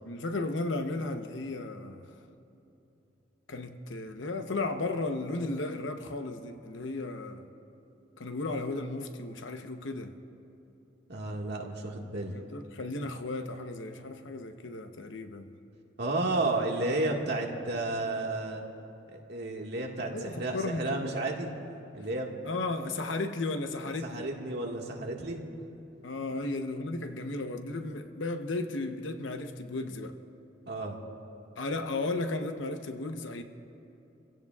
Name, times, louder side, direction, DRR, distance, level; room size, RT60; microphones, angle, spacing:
voice 1, 0.1-2.1 3.5-7.4 8.2-10.2 12.3-15.5 20.1-21.1 22.4-24.3 26.0-30.2 31.6-33.4, left 2 dB, 80° left, 0.9 m, -34 dB
voice 2, 11.1-12.4 16.0-18.6 19.1-21.5 21.9-22.4 24.0-25.4 30.7-31.0, right 2 dB, 60° right, 1.7 m, -32 dB
28.5 x 16.5 x 2.4 m
head